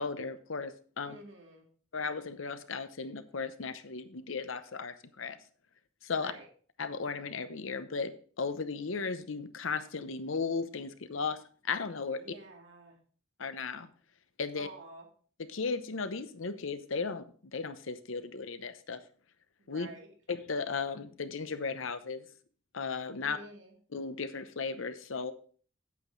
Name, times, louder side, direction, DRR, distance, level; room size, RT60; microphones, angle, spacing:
voice 1, 0.0-1.2 1.9-5.4 6.0-6.3 6.8-11.4 11.7-12.2 13.4-13.9 14.4-14.7 15.5-17.3 17.5-19.0 19.7-19.9 20.3-22.3 22.7-23.4 23.9-25.3, left 4 dB, 80° left, 11 dB, 0.8 m, -35 dB
voice 2, 1.0-1.7 6.1-6.5 12.2-13.0 14.5-15.1 19.6-20.1 23.2-23.8, right 2 dB, 70° right, 1 dB, 2.2 m, -49 dB
8.6 x 8.2 x 3.9 m, 0.44 s
head